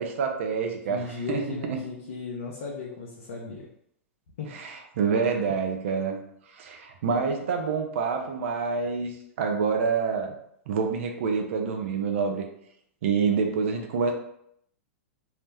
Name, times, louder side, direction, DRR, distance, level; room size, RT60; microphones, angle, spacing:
voice 1, 0.0-1.0 1.3-1.8 4.5-6.2 6.5-10.3 10.7-12.4 13.0-14.1, right 5 dB, 65° right, 4 dB, 0.5 m, -27 dB
voice 2, 0.9-3.7 4.4-4.5, left 4 dB, 70° left, -3 dB, 0.7 m, -36 dB
2.8 x 2.1 x 3.3 m, 0.71 s
hypercardioid pair, 120°, 7 cm